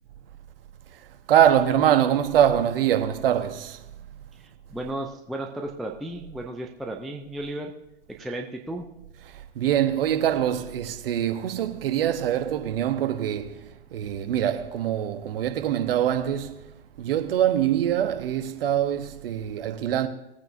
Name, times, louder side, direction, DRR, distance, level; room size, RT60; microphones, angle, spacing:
voice 1, 0.9-3.8 9.3-20.1, right 10 dB, 55° right, 1.1 m, -24 dB
voice 2, 4.4-7.7 8.1-8.9, right 1 dB, ahead, 0.3 m, -34 dB
19.0 x 8.9 x 2.6 m
figure-of-eight pair, 110°, 33 cm